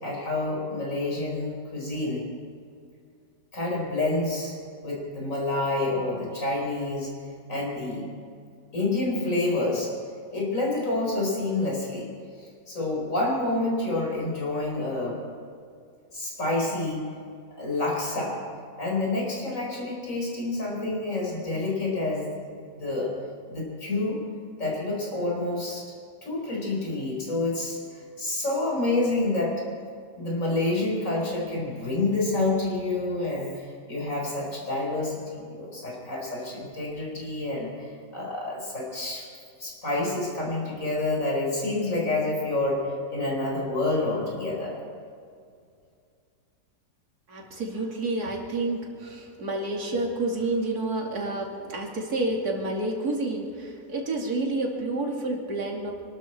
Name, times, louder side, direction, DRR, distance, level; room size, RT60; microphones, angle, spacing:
voice 1, 0.0-2.2 3.5-4.6 4.8-7.1 7.5-8.1 8.7-9.9 10.3-12.0 12.7-15.2 16.1-17.0 17.6-18.4 18.8-22.3 22.7-23.1 23.5-24.2 24.6-25.8 26.2-29.5 30.2-37.9 38.1-39.2 39.6-42.8 43.1-44.7, left 2 dB, 45° left, -2 dB, 4.9 m, -28 dB
voice 2, 47.3-55.9, right 2 dB, 60° right, -1 dB, 3.0 m, -29 dB
26.0 x 12.5 x 4.4 m, 2.3 s
omnidirectional pair, 1.9 m